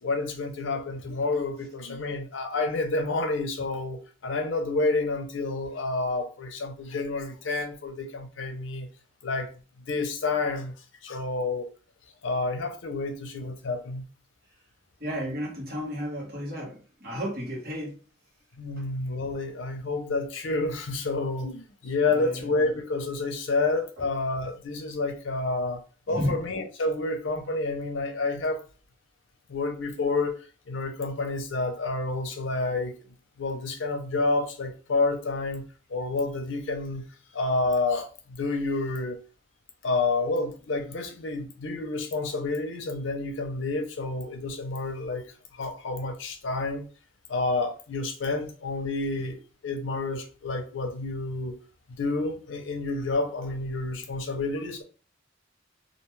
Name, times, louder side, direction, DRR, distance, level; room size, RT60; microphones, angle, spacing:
voice 1, 0.0-8.9 9.2-9.6 9.9-10.7 11.0-11.7 12.2-14.0 18.6-25.8 26.1-28.6 29.5-30.4 30.7-33.0 33.4-35.6 35.9-37.0 37.3-39.2 39.8-45.2 45.5-46.8 47.3-51.6 52.0-54.8, left 3 dB, 80° left, 0.6 m, -29 dB
voice 2, 15.0-18.0 22.1-22.5 26.1-26.4, equal, 55° right, 1.1 m, -32 dB
2.5 x 2.3 x 3.0 m
head